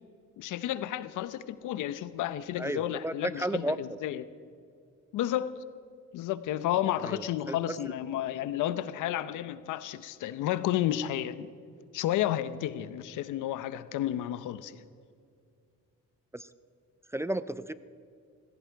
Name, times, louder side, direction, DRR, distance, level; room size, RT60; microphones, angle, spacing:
voice 1, 0.4-4.3 5.1-5.5 6.1-11.5 11.9-14.8, left 12 dB, 85° left, 0.8 m, -32 dB
voice 2, 2.6-3.8 7.0-7.6 16.3-16.5 17.1-17.7, right 1 dB, 10° right, 0.5 m, -33 dB
18.5 x 16.0 x 4.6 m
cardioid pair, 90°, 30 cm